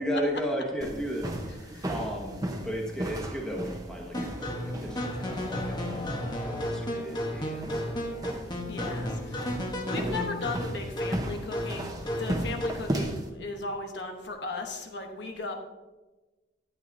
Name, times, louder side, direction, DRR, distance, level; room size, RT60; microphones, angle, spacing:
voice 1, 0.0-1.3 1.9-5.8 6.4-8.4 9.1-9.2, equal, 5° left, -2 dB, 1.4 m, -34 dB
sound 1, 0.8-13.3, right 1 dB, 20° right, 0.9 m, -36 dB
sound 2, 4.1-12.9, equal, 20° left, 1.0 m, -33 dB
voice 2, 8.7-15.5, left 2 dB, 65° left, 3 dB, 1.0 m, -37 dB
11.5 x 9.2 x 2.7 m, 1.2 s
head